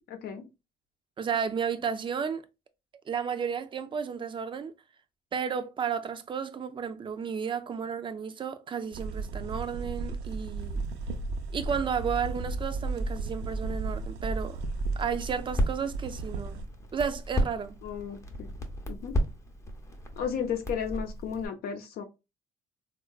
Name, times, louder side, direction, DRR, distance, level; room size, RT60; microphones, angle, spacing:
voice 1, 0.1-0.5 17.8-18.5 18.9-19.1 20.2-22.0, left 7 dB, 65° left, 0.6 m, -34 dB
voice 2, 1.2-2.4 3.1-4.7 5.3-10.8 11.5-14.6 15.0-16.6 16.9-17.8, right 7 dB, 30° right, 0.4 m, -32 dB
sound 1, 8.9-16.7, right 4 dB, 80° right, 0.5 m, -36 dB
Crackle, 10.6-21.5, equal, 15° left, 0.6 m, -34 dB
3.6 x 2.3 x 2.3 m
cardioid pair, 110°, 17 cm